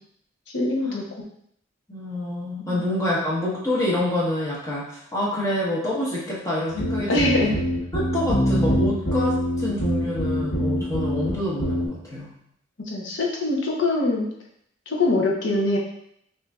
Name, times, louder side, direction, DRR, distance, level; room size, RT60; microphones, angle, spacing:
voice 1, 0.5-1.0 7.1-7.6 12.9-14.3 14.9-15.8, left 2 dB, 65° left, -1 dB, 0.8 m, -22 dB
voice 2, 1.9-7.6 7.9-12.3, left 1 dB, 15° left, -6 dB, 1.2 m, -27 dB
sound 1, 6.7-11.3 11.6-11.9, equal, 85° left, 1.1 m, -24 dB
6.0 x 2.7 x 2.3 m, 0.71 s
head